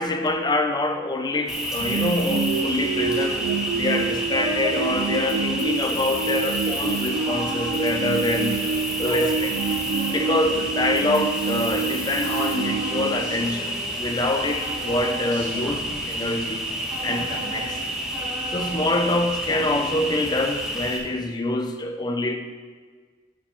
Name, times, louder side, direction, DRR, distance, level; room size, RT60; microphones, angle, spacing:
voice 1, 0.0-8.6 9.0-9.6 10.1-16.6 17.0-18.0 18.5-22.4, left 2 dB, 20° left, 5 dB, 0.6 m, -25 dB
Cricket, 1.5-21.0, equal, 5° right, 1.4 m, -30 dB
sound 1, 1.8-13.9, right 6 dB, 85° right, 0.3 m, -28 dB
sound 2, 1.9-11.8 12.2-14.1 14.3-17.8 18.1-19.1 19.4-20.4, equal, 25° right, 1.8 m, -35 dB
11.5 x 8.4 x 2.9 m, 1.5 s
head